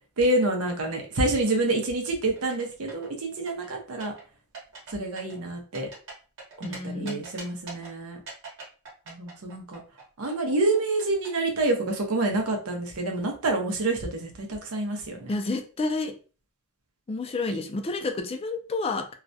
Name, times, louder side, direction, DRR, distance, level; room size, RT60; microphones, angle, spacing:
voice 1, 0.2-4.1 4.9-5.9 6.6-8.2 9.1-9.8 10.2-15.3, right 2 dB, 85° right, 3 dB, 0.7 m, -27 dB
sound 1, 2.4-3.1 3.5-4.2 4.5-4.9 5.2-6.8 7.1-7.9 8.3-11.3, right 3 dB, 60° right, 1.0 m, -42 dB
voice 2, 6.6-7.2 15.3-16.1 17.1-19.1, left 3 dB, 25° left, 6 dB, 0.3 m, -30 dB
2.3 x 2.1 x 2.6 m, 0.36 s
head